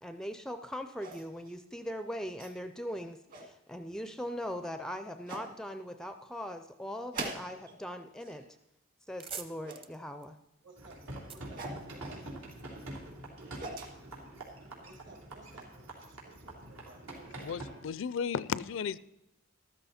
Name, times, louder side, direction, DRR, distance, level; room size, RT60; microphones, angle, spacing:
voice 1, 0.0-8.4 9.1-10.4, equal, 5° left, 0.4 m, -40 dB
sound 1, 1.0-1.5 2.4-2.5 3.1-3.5 4.6-4.7 5.3-5.5 7.1-7.8 8.1-8.5 9.6-9.9 11.5-11.8 13.2-13.9, right 2 dB, 45° right, 1.7 m, -42 dB
sound 2, 8.9-12.5, right 5 dB, 25° right, 0.8 m, -48 dB
voice 2, 10.6-12.2 14.8-17.4, right 2 dB, 60° right, 2.2 m, -57 dB
sound 3, 10.8-17.7, right 1 dB, 85° right, 3.4 m, -45 dB
voice 3, 17.4-19.0, left 6 dB, 65° left, 0.4 m, -34 dB
13.5 x 13.0 x 4.2 m
head